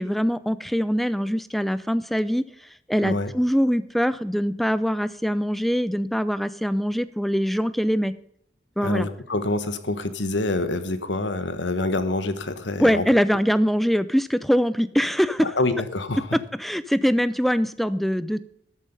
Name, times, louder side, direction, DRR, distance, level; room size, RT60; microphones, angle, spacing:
voice 1, 0.0-2.5 2.9-8.1 8.8-9.1 12.8-15.5 16.3-18.5, equal, ahead, 15 dB, 0.5 m, -23 dB
voice 2, 8.8-13.0 15.4-16.2, left 2 dB, 80° left, 11 dB, 1.4 m, -26 dB
13.0 x 8.5 x 5.4 m, 0.72 s
head